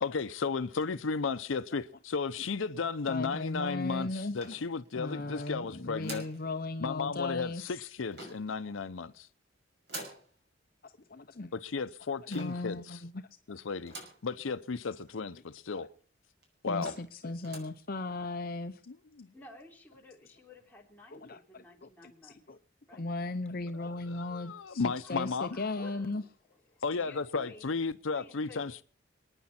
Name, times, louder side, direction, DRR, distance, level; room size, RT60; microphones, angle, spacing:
voice 1, 0.0-6.2 6.8-9.3 11.5-13.0 13.5-13.9 14.2-15.9 16.6-16.9 19.2-19.3 24.2-25.6 26.8-28.8, left 4 dB, 80° left, 0.6 m, -34 dB
voice 2, 3.1-4.5 4.9-7.9 10.8-11.5 12.3-13.2 15.8-15.9 16.7-18.8 21.1-21.6 22.0-22.6 22.9-26.2, left 2 dB, 45° left, 0.8 m, -37 dB
sound 1, 4.4-5.1 6.0-6.4 8.1-8.6 9.9-10.3 12.3-12.7 13.9-14.3 14.8-14.9 15.1-15.2 15.9-16.0 16.4-16.5 16.8-17.1 17.4-17.8, right 2 dB, 55° right, 6.1 m, -45 dB
voice 3, 19.3-22.5 22.9-23.1 25.0-27.7 28.1-28.7, left 2 dB, 10° left, 3.5 m, -54 dB
27.5 x 9.8 x 4.3 m
head